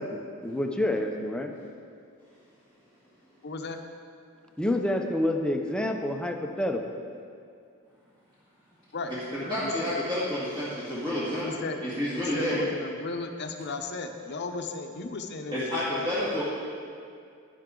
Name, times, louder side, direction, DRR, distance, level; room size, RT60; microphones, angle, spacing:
voice 1, 0.0-1.6 4.6-6.8, left 1 dB, 5° left, 3 dB, 0.6 m, -28 dB
voice 2, 3.4-3.8 8.9-9.1 9.6-9.9 11.4-11.8 12.2-16.1 16.3-16.4, left 3 dB, 55° left, 5 dB, 0.7 m, -35 dB
voice 3, 9.3-12.7 15.5-16.4, left 1 dB, 25° right, -10 dB, 2.0 m, -30 dB
10.5 x 10.5 x 3.8 m, 2.3 s
head